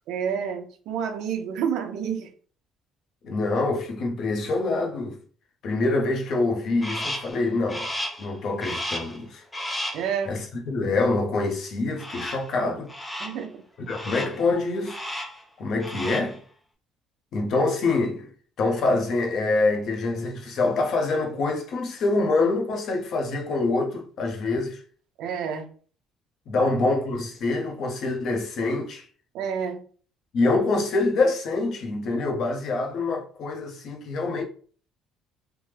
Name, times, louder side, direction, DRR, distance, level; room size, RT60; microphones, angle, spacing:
voice 1, 0.1-2.3 9.9-10.3 13.2-13.5 25.2-25.7 26.5-26.7 29.3-29.8, right 7 dB, 65° right, 0.6 m, -29 dB
voice 2, 3.2-5.2 5.6-7.9 8.2-9.4 10.3-12.9 13.9-15.0 15.6-16.4 17.3-18.3 18.6-24.8 26.5-29.0 30.3-34.4, left 3 dB, 50° left, 0.7 m, -25 dB
Crow, 6.8-7.4 7.7-8.3 8.6-9.2 9.5-10.1 12.0-12.5 12.9-13.4 13.9-14.4 14.8-15.4 15.7-16.4, left 1 dB, 10° left, 0.5 m, -33 dB
3.4 x 2.0 x 3.1 m
cardioid pair, 160°, 0 cm